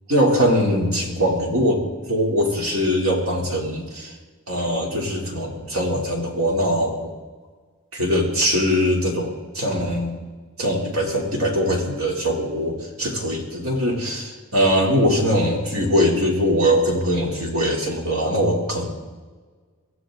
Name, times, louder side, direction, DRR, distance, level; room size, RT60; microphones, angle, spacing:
voice 1, 0.1-4.1 4.5-7.1 7.9-10.2 10.6-18.9, equal, 75° right, -1 dB, 3.4 m, -22 dB
24.0 x 15.5 x 3.9 m, 1.4 s
head